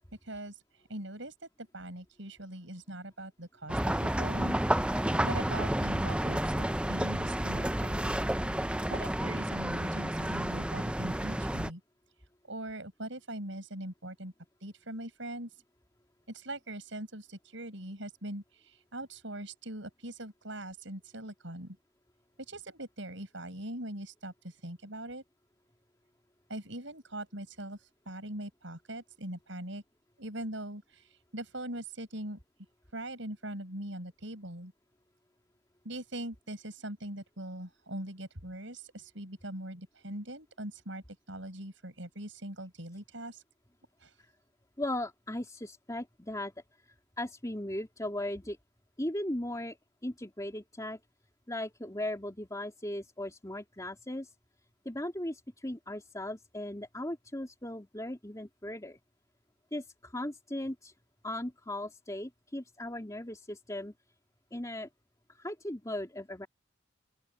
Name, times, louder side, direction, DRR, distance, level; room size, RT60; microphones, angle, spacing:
voice 1, 0.2-8.1 8.9-11.8 12.5-14.3 14.6-15.6 16.3-21.8 22.5-25.2 26.5-29.8 30.2-32.4 32.9-34.7 35.8-43.4 44.0-44.2, right 1 dB, 65° right, 7.8 m, -42 dB
sound 1, 3.7-11.7, right 1 dB, 5° right, 0.6 m, -30 dB
voice 2, 44.8-46.5 47.2-48.6 49.0-49.8 50.0-51.0 51.5-54.3 54.8-59.0 59.7-60.9 61.2-63.9 64.5-64.9 65.3-66.5, left 1 dB, 15° left, 3.1 m, -37 dB
open air
head